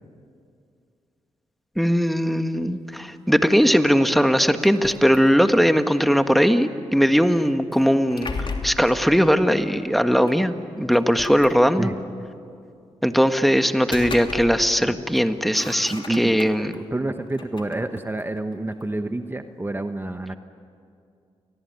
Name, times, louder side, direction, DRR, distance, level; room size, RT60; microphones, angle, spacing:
voice 1, 1.8-8.3 8.6-11.9 13.0-16.7, equal, ahead, 8 dB, 1.6 m, -19 dB
sound 1, 4.6-5.7 7.7-9.0 10.3-10.4 10.9-12.0 13.6-14.8 15.1-16.8 17.3-18.9, left 4 dB, 45° left, 2.9 m, -36 dB
voice 2, 15.9-20.4, right 2 dB, 20° right, 8 dB, 1.2 m, -29 dB
29.0 x 19.5 x 9.5 m, 2.4 s
supercardioid pair, 55°, 12 cm